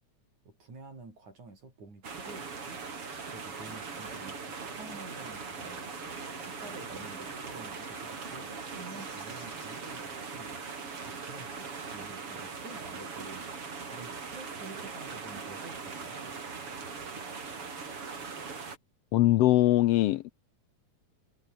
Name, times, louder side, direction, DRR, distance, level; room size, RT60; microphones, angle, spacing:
voice 1, 0.5-2.8 3.2-5.9 6.4-16.4, right 3 dB, 70° right, 9.1 m, -49 dB
sound 1, 2.0-18.8, right 5 dB, 45° right, 4.5 m, -40 dB
sound 2, 3.9-9.8, left 3 dB, 40° left, 6.7 m, -55 dB
voice 2, 19.1-20.3, left 16 dB, 80° left, 1.4 m, -22 dB
omnidirectional pair, 3.5 m